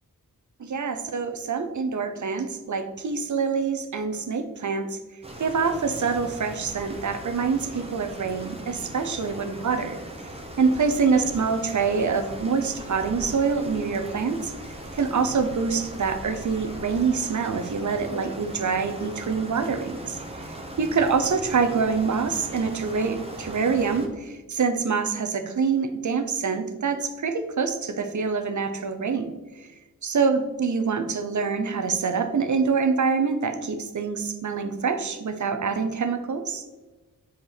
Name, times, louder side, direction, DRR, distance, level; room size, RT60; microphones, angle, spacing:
voice 1, 0.6-5.0 5.4-10.0 10.6-14.5 14.9-29.7 30.0-36.6, right 5 dB, 60° right, 8 dB, 0.8 m, -25 dB
sound 1, 5.2-24.1, right 1 dB, 15° right, 1.2 m, -39 dB
8.0 x 4.7 x 4.0 m, 1.2 s
wide cardioid pair, 80°, 34 cm